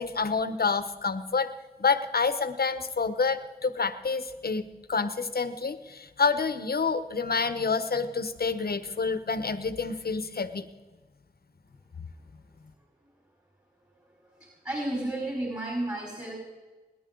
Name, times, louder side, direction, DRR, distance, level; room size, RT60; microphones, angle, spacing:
voice 1, 0.0-1.5 1.8-10.7, left 4 dB, 70° left, 11 dB, 1.0 m, -28 dB
voice 2, 14.3-16.3, right 1 dB, 25° right, -4 dB, 5.3 m, -32 dB
29.0 x 10.5 x 3.9 m, 1.2 s
cardioid pair, 50°, 16 cm